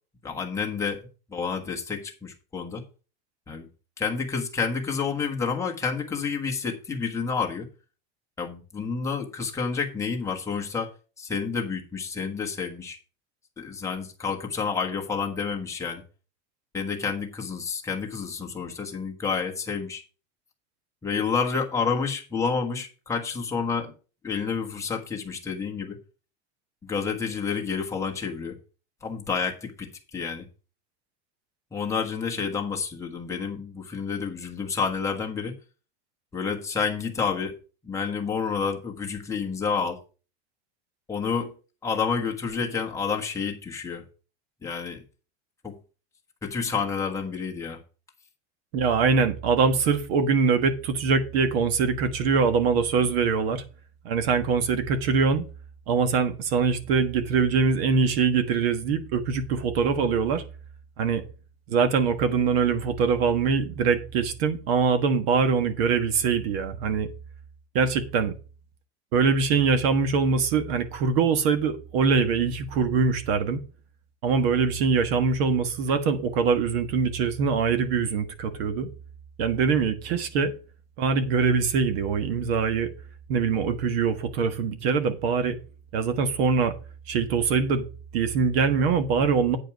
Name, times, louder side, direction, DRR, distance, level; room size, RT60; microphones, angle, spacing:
voice 1, 0.2-1.0 1.3-2.8 3.5-3.7 4.0-7.7 8.4-10.9 11.2-13.0 13.6-16.0 16.7-20.0 21.0-23.9 24.2-26.0 26.8-28.6 29.0-30.5 31.7-35.6 36.3-37.6 37.8-40.0 41.1-41.5 41.8-44.0 44.6-45.0 45.6-45.8 46.4-47.8, left 5 dB, 10° left, 1.2 m, -29 dB
voice 2, 48.7-53.6 54.0-55.5 55.9-60.4 61.0-61.2 61.7-67.1 67.7-68.4 69.1-73.6 74.2-78.9 79.4-80.5 81.0-82.9 83.3-85.6 85.9-86.7 87.1-87.9 88.1-89.6, right 5 dB, 60° right, 1.5 m, -23 dB
8.9 x 5.2 x 6.0 m
supercardioid pair, 170°, 34 cm